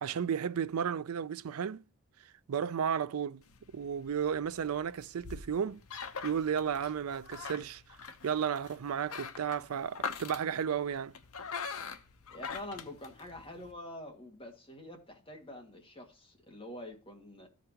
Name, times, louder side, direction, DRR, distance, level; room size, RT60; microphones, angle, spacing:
voice 1, 0.0-1.8 2.5-3.4 3.7-5.8 6.2-7.8 8.2-11.1, right 7 dB, 80° right, 0.4 m, -33 dB
sound 1, 3.4-13.7, left 5 dB, 75° left, 0.9 m, -44 dB
voice 2, 12.3-17.5, left 1 dB, 25° left, 1.9 m, -46 dB
14.0 x 5.2 x 2.9 m
head